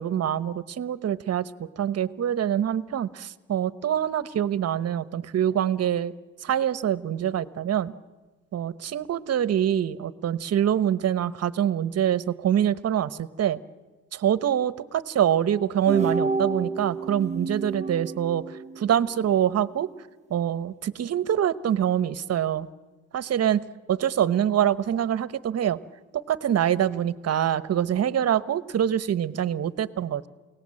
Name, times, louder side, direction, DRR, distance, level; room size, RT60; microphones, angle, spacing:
voice 1, 0.0-6.1 6.4-7.9 8.5-13.6 14.1-19.9 20.3-22.7 23.1-25.8 26.1-30.3, right 10 dB, 55° right, 15 dB, 1.0 m, -25 dB
sound 1, 15.9-19.1, right 4 dB, 25° right, 0.9 m, -29 dB
28.5 x 18.0 x 7.7 m, 1.3 s
cardioid pair, 90°, 30 cm